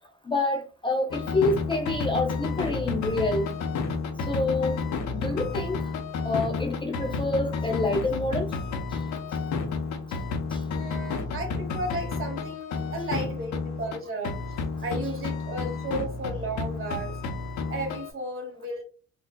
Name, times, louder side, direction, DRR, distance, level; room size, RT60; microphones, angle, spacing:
voice 1, 0.3-3.5 4.3-4.8 5.1-5.8 6.2-8.5 8.9-9.0 10.1-10.2 10.5-10.6, left 2 dB, 15° left, 0.4 m, -27 dB
sound 1, 1.1-14.0 14.2-18.1, left 4 dB, 70° left, 0.7 m, -31 dB
voice 2, 10.7-17.2 17.7-18.8, right 1 dB, 45° right, 1.4 m, -34 dB
4.3 x 2.4 x 2.2 m
cardioid pair, 90°, 30 cm